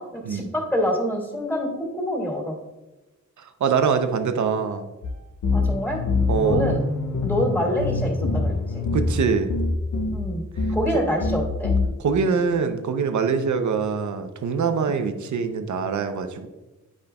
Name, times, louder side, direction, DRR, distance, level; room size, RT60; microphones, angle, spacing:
voice 1, 0.0-2.6 5.5-6.0 6.4-6.8 7.2-8.8 10.1-10.4 10.7-11.7, equal, 5° left, -2 dB, 2.1 m, -26 dB
voice 2, 3.4-4.8 6.3-6.7 8.9-9.5 12.0-16.5, right 6 dB, 75° right, 8 dB, 0.6 m, -24 dB
sound 1, 5.0-5.1 5.4-10.2 10.6-10.9 11.2-11.9, left 3 dB, 80° left, 0.8 m, -24 dB
9.7 x 5.1 x 2.3 m, 1.1 s
wide cardioid pair, 80°, 30 cm